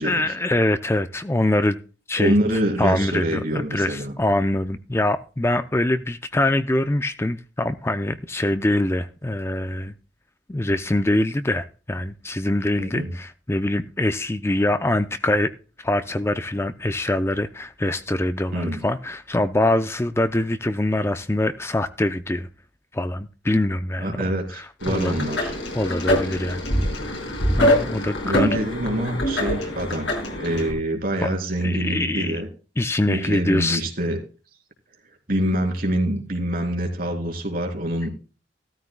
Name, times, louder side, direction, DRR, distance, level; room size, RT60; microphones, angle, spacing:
voice 1, 0.0-1.8 2.1-2.3 2.8-9.9 10.5-15.5 15.8-22.5 22.9-24.2 24.5-25.3 25.7-26.6 27.6-28.6 31.2-31.4 31.6-32.4 32.8-33.8, left 1 dB, 15° left, 0.5 m, -24 dB
voice 2, 2.2-4.1 12.8-13.1 18.5-18.9 24.0-25.5 28.2-32.5 33.1-34.2 35.3-38.1, right 1 dB, 50° right, 3.4 m, -25 dB
sound 1, 24.8-30.7, equal, 85° left, 5.7 m, -24 dB
15.5 x 13.5 x 2.2 m
head